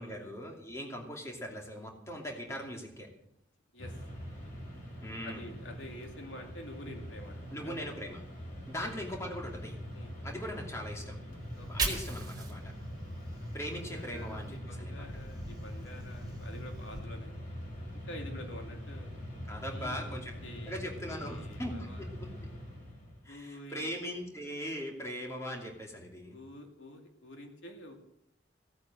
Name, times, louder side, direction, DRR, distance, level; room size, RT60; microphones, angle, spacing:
voice 1, 0.0-3.1 5.0-5.5 7.5-8.2 8.7-9.8 10.2-11.2 11.6-12.7 13.5-15.1 19.5-20.3 20.6-22.3 23.2-26.4, equal, 15° left, 0 dB, 2.7 m, -40 dB
Mechanisms, 3.8-23.2, equal, 45° left, 3.8 m, -43 dB
voice 2, 5.2-7.8 8.8-8.9 9.9-10.1 11.5-12.0 13.4-17.3 17.9-19.2 19.6-22.1 23.3-23.9 26.3-27.9, left 1 dB, 85° left, 3 dB, 2.5 m, -48 dB
Fire, 11.4-14.6 14.9-17.0, right 3 dB, 20° right, 3.7 m, -41 dB
17.0 x 8.7 x 7.7 m, 0.78 s
head